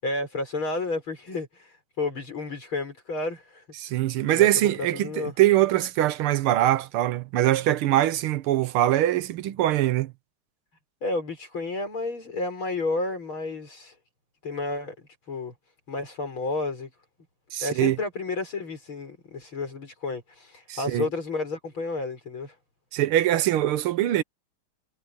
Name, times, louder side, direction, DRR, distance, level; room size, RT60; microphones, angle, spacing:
voice 1, 0.0-4.0 4.3-4.5 4.9-5.3 11.0-14.0 14.4-15.5 15.9-16.9 17.6-22.6, left 3 dB, 75° left, 7.1 m, -31 dB
voice 2, 3.8-10.1 17.5-18.0 20.7-21.1 22.9-24.2, right 13 dB, 85° right, 1.8 m, -23 dB
omnidirectional pair, 2.3 m